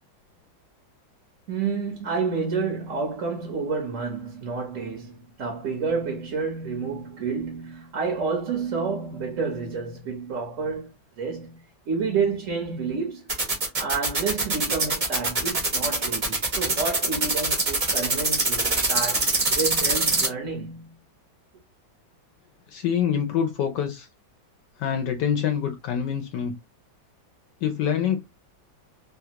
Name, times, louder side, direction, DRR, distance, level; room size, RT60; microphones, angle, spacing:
voice 1, 1.5-13.3 13.8-21.0, right 5 dB, 55° right, 0.9 m, -29 dB
sound 1, 13.3-20.3, right 3 dB, 35° right, 0.5 m, -23 dB
voice 2, 22.7-24.1 24.8-26.6 27.6-28.2, left 8 dB, 70° left, 1.1 m, -25 dB
3.3 x 2.3 x 2.8 m
omnidirectional pair, 2.1 m